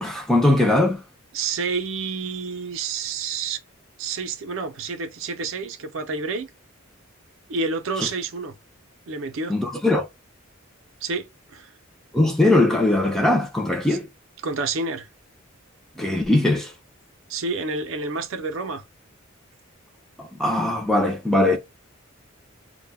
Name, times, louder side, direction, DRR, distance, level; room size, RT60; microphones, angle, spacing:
voice 1, 0.0-1.0 8.0-8.1 9.5-10.1 12.1-14.1 16.0-16.7 20.2-21.6, left 2 dB, ahead, 0.4 m, -20 dB
voice 2, 1.3-3.6 4.0-6.5 7.5-8.5 9.1-9.5 11.0-11.7 13.9-14.0 14.4-15.1 17.3-18.8, right 4 dB, 70° right, 0.5 m, -29 dB
2.1 x 2.1 x 3.3 m
head